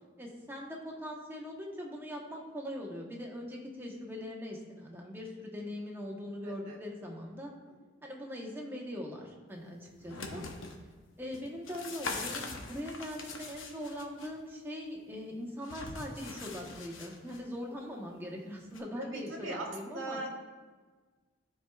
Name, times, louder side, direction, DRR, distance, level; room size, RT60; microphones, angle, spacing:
voice 1, 0.2-7.5 8.0-10.4 11.2-20.2, left 1 dB, 10° right, -1 dB, 0.9 m, -41 dB
voice 2, 6.4-6.8 7.7-7.8 9.6-9.9 17.7-17.9 19.0-20.3, right 2 dB, 70° right, 1 dB, 1.3 m, -41 dB
sound 1, 9.9-10.8 11.3-14.3 15.6-17.4 18.7-18.8, left 3 dB, 75° left, 0.8 m, -42 dB
13.0 x 4.6 x 2.3 m, 1.4 s
head